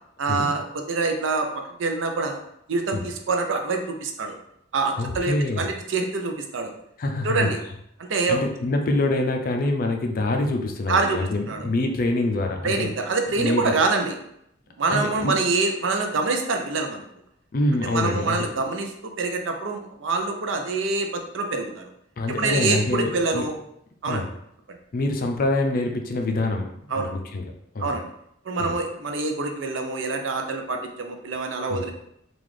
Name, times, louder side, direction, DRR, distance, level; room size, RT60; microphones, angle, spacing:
voice 1, 0.2-1.5 1.8-2.4 2.7-4.3 4.7-6.7 7.2-7.6 8.0-8.4 10.9-11.2 11.5-11.7 12.6-14.2 14.8-17.0 17.8-18.9 19.2-21.8 22.4-23.5 24.0-24.2 26.9-27.1 27.8-28.1 28.5-31.9, right 3 dB, 85° right, 4 dB, 0.5 m, -25 dB
voice 2, 5.0-5.6 7.0-7.5 8.3-12.9 13.4-13.8 14.9-15.4 17.5-18.4 22.2-23.5 24.1-24.3 24.9-26.7 26.9-28.0 28.6-28.8 31.7-31.9, left 2 dB, 50° left, 3 dB, 0.5 m, -25 dB
3.8 x 2.4 x 3.2 m, 0.75 s
head